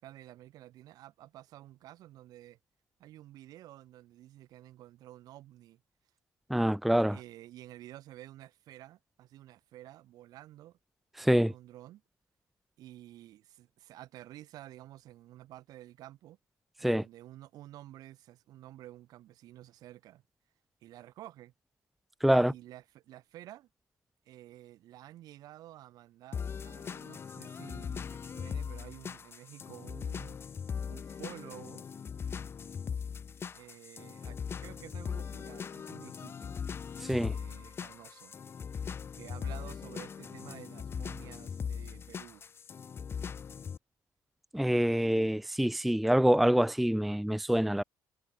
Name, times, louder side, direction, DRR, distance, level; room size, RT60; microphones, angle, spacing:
voice 1, 0.0-2.6 3.0-5.8 7.1-10.8 11.2-12.0 12.8-16.4 16.8-20.2 20.8-21.5 22.3-23.7 24.2-30.4 30.9-31.9 33.5-36.6 37.2-38.4 39.1-42.4, right 14 dB, 70° right, 6.8 m, -51 dB
voice 2, 6.5-7.2 11.2-11.5 16.8-17.1 22.2-22.5 37.0-37.3 44.5-47.8, equal, ahead, 0.5 m, -26 dB
sound 1, 26.3-43.8, left 6 dB, 35° left, 6.5 m, -40 dB
cardioid pair, 120°, 7 cm